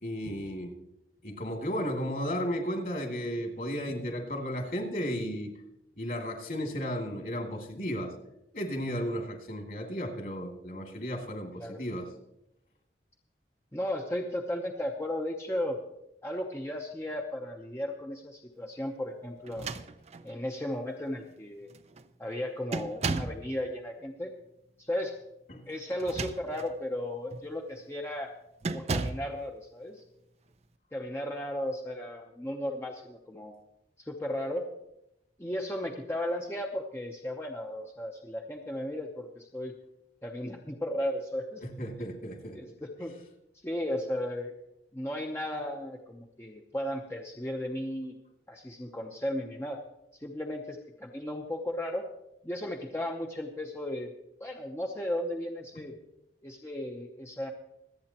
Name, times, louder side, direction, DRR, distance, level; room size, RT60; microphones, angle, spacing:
voice 1, 0.0-0.7 1.2-5.5 6.0-8.1 8.5-12.1 25.5-25.6 41.6-42.6, equal, 50° left, 2 dB, 2.6 m, -34 dB
voice 2, 13.7-15.8 16.2-19.7 20.2-21.7 22.2-24.3 24.8-25.1 25.7-28.3 28.6-30.0 30.9-33.5 34.0-34.7 35.4-39.7 40.2-41.6 42.5-43.2 43.6-44.5 44.9-48.1 48.5-49.8 50.2-52.0 52.4-54.1 54.4-56.0 56.4-57.5, left 1 dB, 15° left, 1 dB, 0.8 m, -35 dB
sound 1, 19.4-20.4 21.2-21.3 21.7-22.1 22.7-23.5 25.9-26.7 27.3-27.5 28.6-29.3, right 3 dB, 35° right, 0.5 m, -34 dB
26.0 x 8.7 x 3.0 m, 0.85 s
head